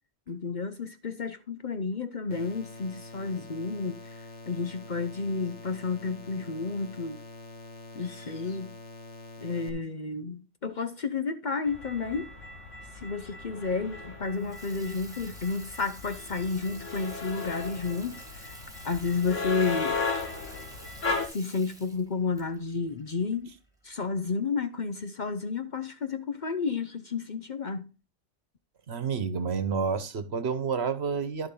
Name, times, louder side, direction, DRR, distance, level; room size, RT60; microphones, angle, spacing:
voice 1, 0.3-7.2 7.9-8.8 9.4-12.3 12.9-18.6 18.8-20.0 21.2-23.5 23.8-27.9, left 4 dB, 45° left, 0.8 m, -31 dB
sound 1, 2.3-9.7, left 2 dB, 70° left, 1.8 m, -46 dB
sound 2, 11.7-21.3, left 4 dB, 85° left, 2.4 m, -36 dB
Water tap faucet / Sink (filling or washing), 14.2-23.8, right 1 dB, 5° right, 2.1 m, -50 dB
voice 2, 28.9-31.5, right 5 dB, 60° right, 1.4 m, -29 dB
11.0 x 7.1 x 3.8 m
omnidirectional pair, 1.2 m